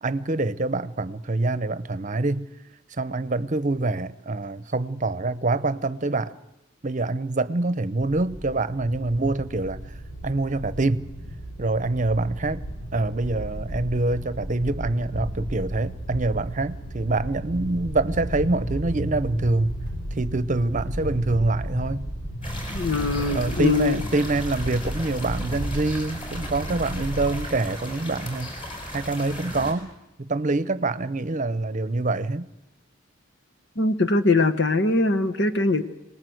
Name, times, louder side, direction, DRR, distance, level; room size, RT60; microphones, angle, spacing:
voice 1, 0.0-2.5 3.0-6.4 6.8-9.9 10.2-11.1 11.6-12.6 12.9-19.7 20.1-22.1 23.3-29.9 30.2-32.5, right 2 dB, 40° right, 0.8 m, -25 dB
sound 1, 8.0-27.4, right 1 dB, 90° left, 5.4 m, -34 dB
sound 2, 22.4-29.7, equal, 25° left, 5.9 m, -36 dB
voice 2, 22.7-24.0 33.8-35.8, left 3 dB, 60° left, 1.2 m, -22 dB
26.5 x 19.5 x 7.9 m
head